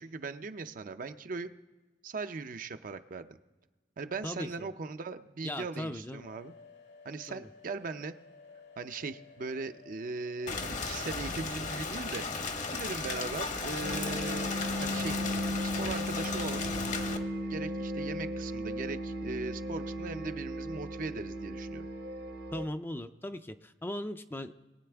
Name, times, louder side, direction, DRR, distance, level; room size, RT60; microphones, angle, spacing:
voice 1, 0.0-1.5 2.0-3.3 4.0-6.5 7.0-8.1 8.8-12.2 12.7-15.2 15.6-16.6 17.5-21.9, right 4 dB, 50° right, 10 dB, 0.5 m, -39 dB
voice 2, 4.2-4.7 5.4-6.3 7.3-7.5 22.5-24.5, left 1 dB, 15° left, 9 dB, 0.4 m, -38 dB
sound 1, 6.2-12.3, left 5 dB, 80° left, 1.8 m, -55 dB
Rain, 10.5-17.2, left 4 dB, 45° left, 0.9 m, -35 dB
sound 2, 13.8-22.6, equal, 80° right, 2.5 m, -36 dB
22.0 x 8.6 x 3.4 m, 1.3 s
head